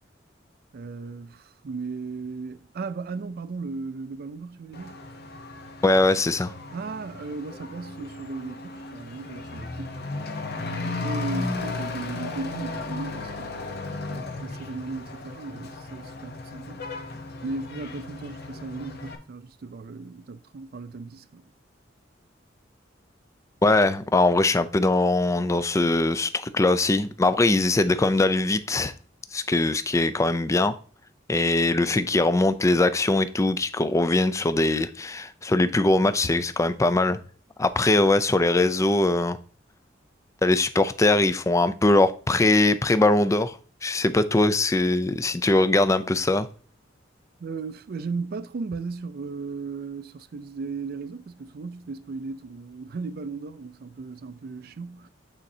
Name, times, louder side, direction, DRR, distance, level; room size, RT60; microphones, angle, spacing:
voice 1, 0.7-5.0 6.7-10.0 10.8-17.1 17.4-21.5 47.4-55.1, right 4 dB, 55° right, 0.4 m, -36 dB
Truck / Accelerating revving vroom, 4.7-19.2, left 2 dB, 55° left, 0.8 m, -35 dB
voice 2, 5.8-6.5 23.6-28.9 29.3-30.7 31.3-37.2 37.6-39.4 40.4-46.5, left 2 dB, 15° left, 0.4 m, -21 dB
9.0 x 4.2 x 2.7 m
head